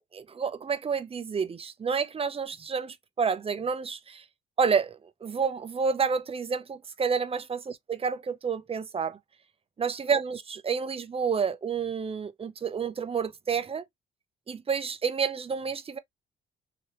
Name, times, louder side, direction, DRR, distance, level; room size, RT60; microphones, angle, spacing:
voice 1, 0.1-4.2 4.6-9.2 9.8-13.8 14.5-16.0, right 6 dB, 30° right, 0.6 m, -29 dB
3.3 x 3.0 x 2.9 m
cardioid pair, 90°, 20 cm